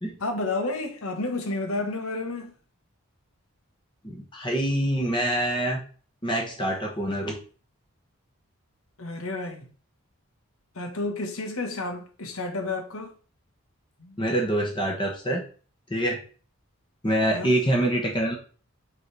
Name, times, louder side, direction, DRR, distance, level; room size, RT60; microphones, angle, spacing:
voice 1, 0.2-2.5 9.0-9.7 10.7-13.1 14.0-14.2 17.3-17.5, left 2 dB, 85° left, 1.4 m, -31 dB
voice 2, 4.0-5.8 6.2-7.4 14.2-15.4 15.9-16.2 17.0-18.3, right 1 dB, 20° left, 1.2 m, -25 dB
6.1 x 4.1 x 4.8 m
head